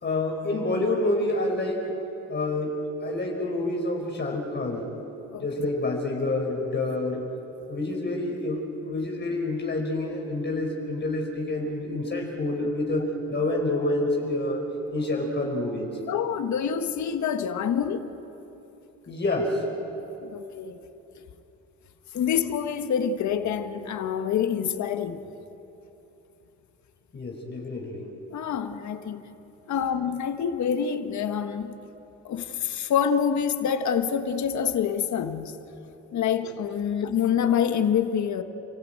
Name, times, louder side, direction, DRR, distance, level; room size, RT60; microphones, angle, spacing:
voice 1, 0.0-2.0 2.3-4.9 5.4-7.3 7.7-14.6 14.9-16.0 19.1-19.6 27.1-28.1, left 2 dB, 35° left, 0 dB, 4.4 m, -28 dB
voice 2, 16.1-18.1 20.2-20.8 22.1-25.3 28.3-29.2 29.7-31.7 32.2-35.6 36.1-38.4, left 8 dB, 70° left, 8 dB, 1.5 m, -26 dB
28.5 x 16.0 x 8.9 m, 3.0 s
cardioid pair, 90°, 30 cm